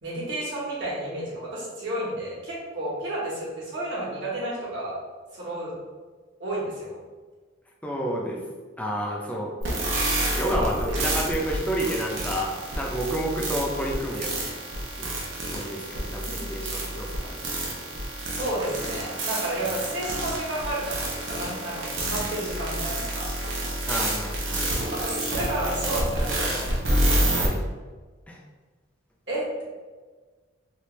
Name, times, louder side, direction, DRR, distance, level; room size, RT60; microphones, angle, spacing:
voice 1, 0.0-5.0 5.3-5.7 6.4-7.0 10.4-11.0 18.3-23.3 24.9-26.6 29.3-29.6, right 1 dB, 65° right, -6 dB, 1.3 m, -31 dB
voice 2, 7.8-8.4 8.8-9.5 9.8-9.9 10.4-14.3 15.0-15.1 15.5-17.8 23.9-24.7 27.3-27.6 28.3-28.4, right 1 dB, 10° left, -1 dB, 0.5 m, -30 dB
sound 1, 9.6-27.5, right 1 dB, 80° right, 0.7 m, -28 dB
3.2 x 2.4 x 3.1 m, 1.4 s
head